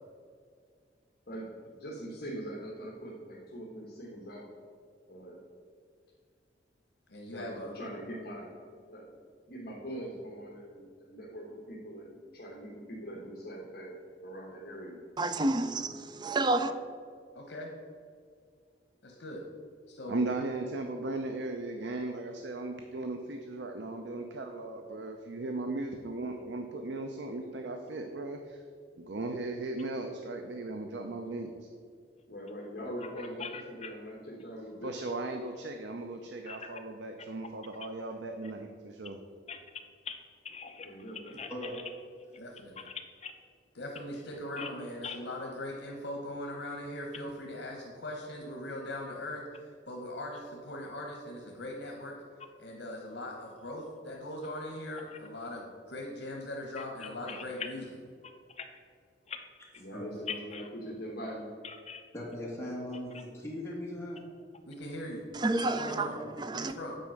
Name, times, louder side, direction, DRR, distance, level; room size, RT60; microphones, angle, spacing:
voice 1, 1.3-4.5 5.1-5.5 7.2-8.6 8.9-9.1 9.5-15.0 32.3-34.9 40.8-41.4 59.8-61.5, equal, 55° left, 1.2 m, -42 dB
voice 2, 7.1-7.8 17.3-17.7 19.0-19.4 19.9-20.2 42.4-42.8 43.8-52.2 52.6-57.8 64.7-65.2 65.7-66.1 66.5-67.0, left 1 dB, 80° left, 1.1 m, -40 dB
voice 3, 15.2-16.7 65.3-66.7, right 2 dB, 25° right, 0.4 m, -30 dB
voice 4, 20.1-28.6 29.0-31.7 34.8-39.2, right 2 dB, 75° right, 0.6 m, -37 dB
voice 5, 33.0-33.9 36.5-36.8 39.5-39.6 40.0-40.2 40.4-41.8 42.8-43.3 44.6-44.7 45.0-45.2 55.1-55.2 56.8-57.4 58.6-58.7 59.3-59.4 60.3-60.7 61.6-62.0, left 6 dB, 35° left, 0.8 m, -42 dB
voice 6, 62.1-64.2 66.2-66.6, left 1 dB, 15° left, 2.0 m, -39 dB
9.1 x 4.2 x 6.3 m
head